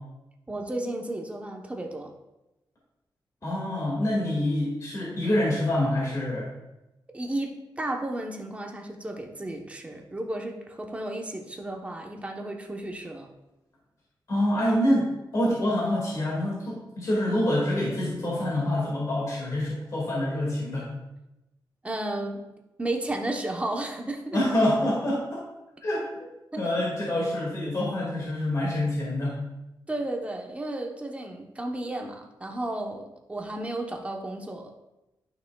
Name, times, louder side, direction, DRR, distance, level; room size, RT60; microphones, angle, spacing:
voice 1, 0.5-2.1 7.1-13.3 21.8-22.5 22.8-24.4 26.5-26.9 29.9-34.8, right 1 dB, 15° right, 2 dB, 0.9 m, -33 dB
voice 2, 3.4-6.5 14.3-20.9 24.3-25.4 25.8-26.3 26.6-29.4, left 1 dB, 45° left, -5 dB, 2.1 m, -26 dB
12.0 x 5.9 x 2.3 m, 0.97 s
wide cardioid pair, 145°, 8 cm